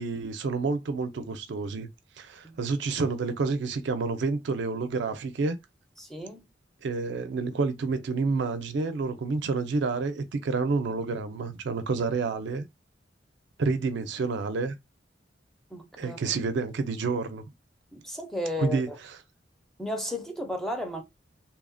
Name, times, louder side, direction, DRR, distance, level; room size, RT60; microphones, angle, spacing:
voice 1, 0.0-1.9 2.2-5.6 6.8-12.6 13.6-14.7 16.0-17.4 18.6-19.2, right 4 dB, 65° right, 0.4 m, -29 dB
voice 2, 6.0-6.5 15.7-16.2 17.9-18.8 19.8-21.0, left 1 dB, ahead, 0.4 m, -34 dB
2.7 x 2.0 x 2.5 m
head